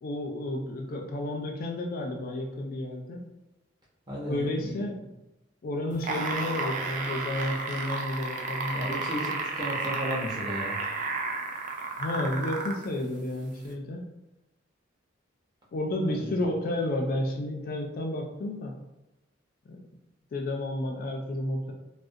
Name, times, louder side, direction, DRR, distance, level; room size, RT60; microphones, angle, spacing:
voice 1, 0.0-3.2 4.3-5.1 5.6-9.0 12.0-14.1 15.7-18.8 19.7-19.8 20.3-21.7, left 1 dB, 50° left, 1 dB, 0.3 m, -31 dB
voice 2, 4.1-4.8 8.7-10.8 16.1-16.4, equal, 20° right, -6 dB, 0.7 m, -35 dB
sound 1, 5.9-12.9 13.7-13.8, right 3 dB, 40° right, 0.3 m, -32 dB
2.4 x 2.1 x 2.6 m, 0.93 s
head